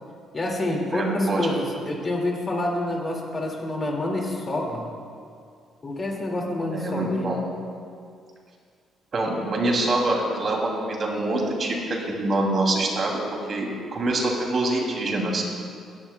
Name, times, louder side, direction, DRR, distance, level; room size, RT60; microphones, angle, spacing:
voice 1, 0.3-4.9 5.8-7.3, left 1 dB, 30° left, 0 dB, 2.1 m, -27 dB
voice 2, 0.9-1.6 6.7-7.4 9.1-13.2 13.5-15.4, right 2 dB, 40° right, -1 dB, 2.6 m, -25 dB
17.0 x 12.0 x 2.2 m, 2.2 s
cardioid pair, 115°, 0 cm